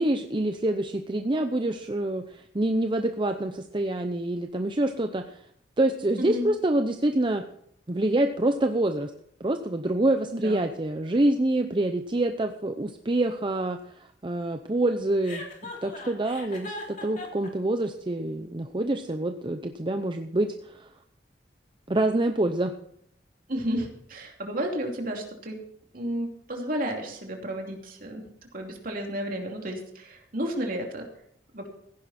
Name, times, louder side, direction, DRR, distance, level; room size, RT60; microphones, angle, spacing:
voice 1, 0.0-5.4 5.8-7.4 7.9-9.1 9.4-15.4 15.8-20.9 21.9-22.7, right 1 dB, 25° right, 6 dB, 0.7 m, -26 dB
voice 2, 6.2-6.5 10.3-10.6 23.5-25.6 25.9-28.2 28.5-31.1 31.5-31.7, equal, 50° right, 2 dB, 2.8 m, -32 dB
Chuckle chortle, 15.2-17.5, left 2 dB, 45° left, 3.3 m, -39 dB
15.5 x 10.5 x 4.3 m, 0.69 s
head